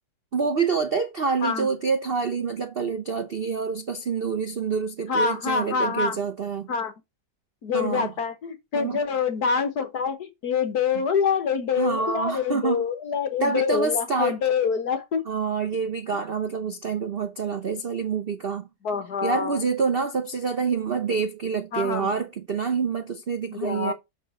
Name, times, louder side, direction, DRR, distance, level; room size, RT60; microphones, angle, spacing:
voice 1, 0.3-6.7 7.7-8.1 8.7-9.0 11.7-12.8 13.4-14.4 15.3-18.7 19.2-23.9, right 5 dB, 85° right, 0.5 m, -27 dB
voice 2, 5.1-6.2 6.7-6.9 7.6-15.2 18.8-19.6 21.7-22.1 23.6-23.9, left 6 dB, 55° left, 1.5 m, -26 dB
6.5 x 4.5 x 5.0 m
omnidirectional pair, 2.2 m